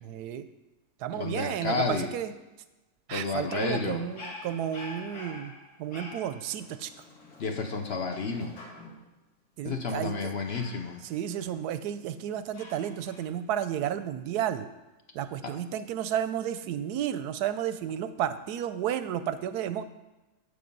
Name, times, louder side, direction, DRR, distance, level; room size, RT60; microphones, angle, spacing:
voice 1, 0.0-0.5 1.0-2.3 3.1-5.5 5.8-6.9 9.6-10.4 11.1-14.7 15.1-19.8, right 10 dB, 85° right, 11 dB, 1.1 m, -32 dB
voice 2, 1.1-2.1 3.1-4.0 7.4-8.5 9.6-11.0 15.4-15.5, left 4 dB, 50° left, 5 dB, 0.9 m, -31 dB
Dog, 3.3-9.1 10.4-11.9 12.5-13.3, left 2 dB, 75° left, 2.1 m, -46 dB
8.2 x 6.9 x 5.3 m, 1.1 s
omnidirectional pair, 1.6 m